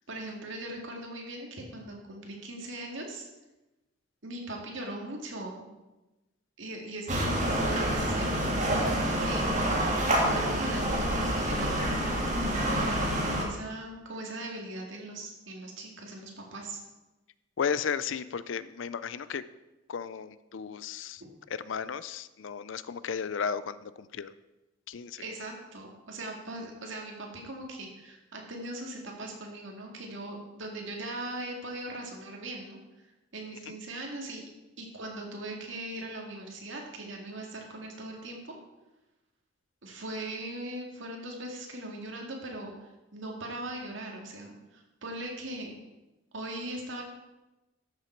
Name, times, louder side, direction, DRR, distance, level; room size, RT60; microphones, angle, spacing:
voice 1, 0.1-3.3 4.2-5.7 6.6-12.3 13.0-16.8 25.2-32.8 33.3-34.5 34.8-38.5 39.8-45.8 46.3-47.0, right 1 dB, 70° right, 0 dB, 2.1 m, -40 dB
sound 1, 7.1-13.4, right 1 dB, 35° right, 1.7 m, -27 dB
voice 2, 17.6-19.4 19.9-21.2 21.5-24.3 24.9-25.2 33.7-33.8, left 6 dB, 70° left, 15 dB, 0.4 m, -34 dB
12.5 x 6.8 x 4.5 m, 1.0 s
head